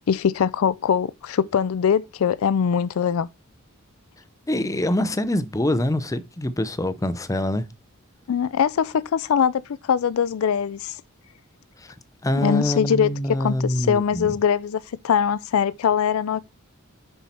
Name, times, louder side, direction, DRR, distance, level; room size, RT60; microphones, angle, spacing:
voice 1, 0.1-3.3 8.3-11.0 12.3-13.1 13.4-16.4, left 7 dB, 70° left, 0.4 m, -22 dB
voice 2, 4.5-7.7 11.8-11.9 12.2-14.3, left 1 dB, 15° left, 0.6 m, -25 dB
7.1 x 5.6 x 4.3 m
head